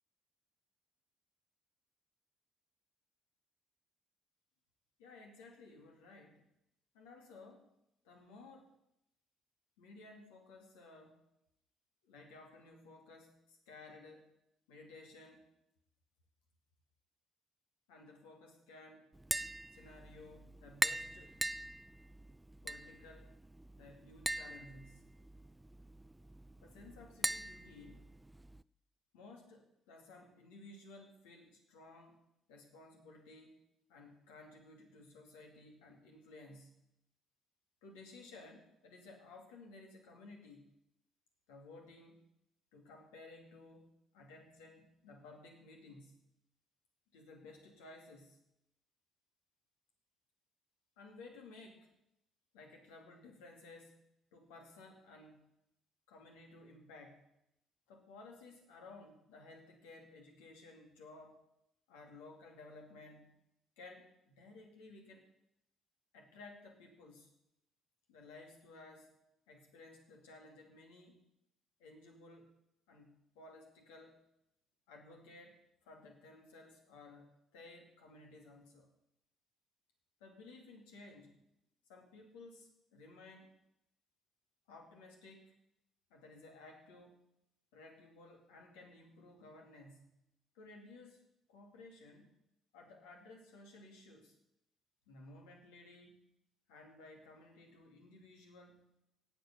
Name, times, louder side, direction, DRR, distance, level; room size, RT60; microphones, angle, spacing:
voice 1, 5.0-6.5 6.9-7.7 8.0-8.8 9.8-11.2 12.0-14.3 14.7-15.5 17.9-19.1 19.7-21.4 22.6-23.3 23.8-25.1 26.6-28.1 29.1-32.2 32.5-33.6 33.9-36.9 37.8-40.7 41.5-42.2 42.7-46.3 47.1-48.4 51.0-51.9 52.5-54.0 54.3-55.5 56.1-57.2 57.9-61.4 61.9-63.4 63.8-65.3 66.1-67.3 68.1-69.1 69.5-71.2 71.8-72.5 72.9-74.2 74.9-78.9 80.2-81.4 81.9-83.5 84.7-85.6 86.1-87.2 87.7-90.2 90.5-91.2 91.5-92.3 92.7-94.3 95.1-96.3 96.7-98.9, left 2 dB, 70° left, 2 dB, 2.4 m, -56 dB
Tap, 19.1-28.6, right 1 dB, 10° right, 0.4 m, -42 dB
17.5 x 7.9 x 6.0 m, 0.82 s
figure-of-eight pair, 45°, 0 cm